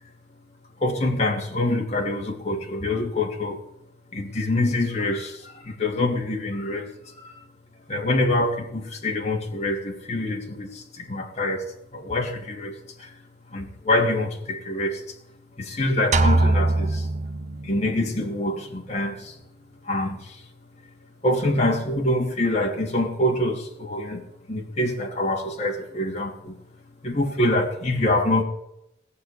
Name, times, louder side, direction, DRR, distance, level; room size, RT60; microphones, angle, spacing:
voice 1, 0.8-3.6 4.1-7.3 7.9-11.6 11.9-13.1 13.5-15.2 15.6-17.1 17.6-19.4 19.8-20.5 21.2-26.6 27.0-28.4, left 1 dB, 35° left, 2.7 m, -25 dB
sound 1, 16.1-18.0, right 2 dB, 40° right, 1.0 m, -21 dB
19.5 x 7.2 x 9.9 m
head